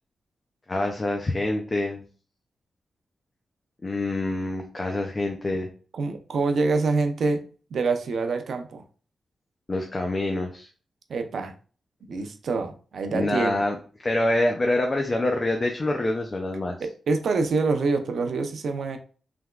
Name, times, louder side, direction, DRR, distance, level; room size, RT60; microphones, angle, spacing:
voice 1, 0.7-2.0 3.8-5.7 9.7-10.7 13.1-13.8 14.0-16.8, left 2 dB, 25° left, 2 dB, 0.4 m, -26 dB
voice 2, 5.9-7.4 7.7-8.8 11.1-11.5 12.1-13.6 16.8-19.0, right 4 dB, 70° right, 6 dB, 0.5 m, -26 dB
3.4 x 2.9 x 2.3 m, 0.40 s
wide cardioid pair, 125°, 0 cm